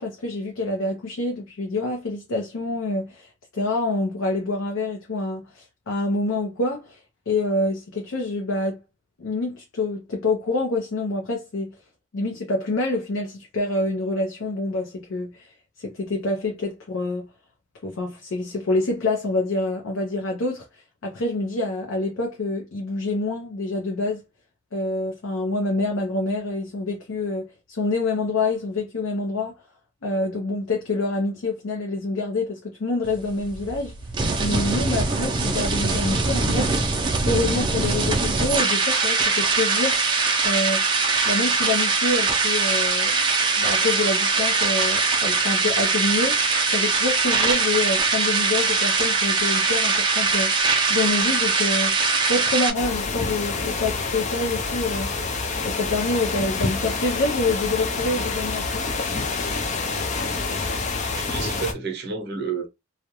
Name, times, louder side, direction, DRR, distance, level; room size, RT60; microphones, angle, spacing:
voice 1, 0.0-7.0 7.3-8.8 9.2-11.8 12.1-17.3 17.8-24.2 24.7-29.6 30.0-33.9 34.4-36.7 37.3-40.0 40.4-40.8 41.2-43.3 43.6-46.4 46.7-52.0 52.3-55.1 55.6-58.9, left 2 dB, 85° left, 0.6 m, -26 dB
sound 1, 33.0-52.7, right 4 dB, 25° right, 0.5 m, -22 dB
sound 2, 52.7-61.7, left 4 dB, 35° left, 0.4 m, -27 dB
voice 2, 61.0-62.7, right 5 dB, 55° right, 0.7 m, -30 dB
2.3 x 2.1 x 2.8 m
head